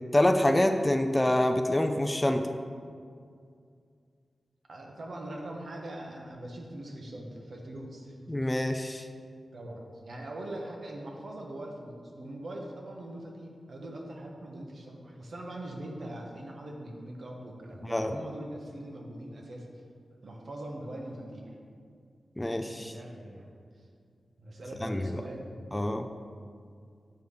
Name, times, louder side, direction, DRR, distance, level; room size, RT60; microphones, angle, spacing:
voice 1, 0.1-2.5 8.3-9.1 17.8-18.2 22.4-23.0 24.8-25.2 25.7-26.1, left 1 dB, 15° left, 6 dB, 0.4 m, -26 dB
voice 2, 4.7-8.3 9.5-19.7 20.2-21.6 22.7-23.5 23.8-23.9 24.4-25.6, right 1 dB, 65° right, 0 dB, 1.1 m, -42 dB
7.9 x 3.3 x 5.5 m, 2.2 s
cardioid pair, 60°, 0 cm